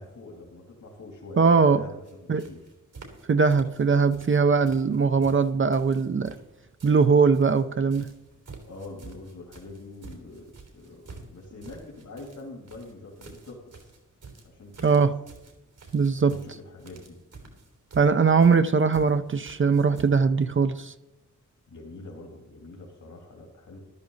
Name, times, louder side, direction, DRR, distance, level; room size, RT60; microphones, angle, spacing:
voice 1, 0.0-2.7 8.6-10.4 10.7-13.9 14.4-15.1 16.2-17.2 21.7-23.8, left 2 dB, 75° left, 3.0 m, -44 dB
voice 2, 1.4-1.8 2.3-2.4 3.3-6.4 6.8-8.1 14.8-15.2 15.9-16.4 18.0-20.9, right 5 dB, 45° right, 0.5 m, -21 dB
sound 1, 2.0-2.1 2.4-3.2 3.5-4.4 4.7-7.6 7.9-20.0, right 4 dB, 90° right, 3.6 m, -48 dB
14.0 x 13.0 x 4.0 m
wide cardioid pair, 125°, 30 cm